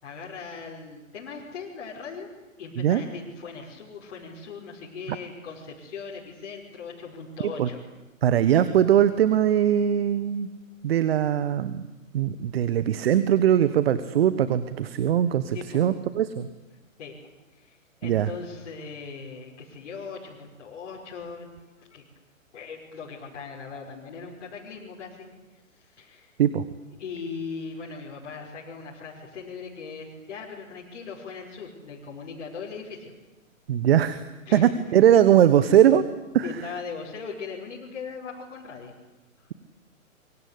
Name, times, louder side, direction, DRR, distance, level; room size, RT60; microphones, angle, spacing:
voice 1, 0.0-2.3 2.6-7.8 15.5-15.9 17.0-17.2 17.5-21.5 21.8-22.0 22.5-25.3 25.7-26.3 27.0-33.1 34.5-34.7 35.6-35.7 36.4-38.9 39.4-39.5, left 5 dB, 50° left, -4 dB, 5.8 m, -39 dB
voice 2, 8.2-10.5 10.8-11.8 12.1-16.5 18.0-18.3 26.4-26.6 33.7-34.2 34.5-36.0 36.3-36.5, right 10 dB, 45° right, 14 dB, 1.4 m, -21 dB
26.0 x 24.5 x 8.5 m, 1.1 s
figure-of-eight pair, 125°, 41 cm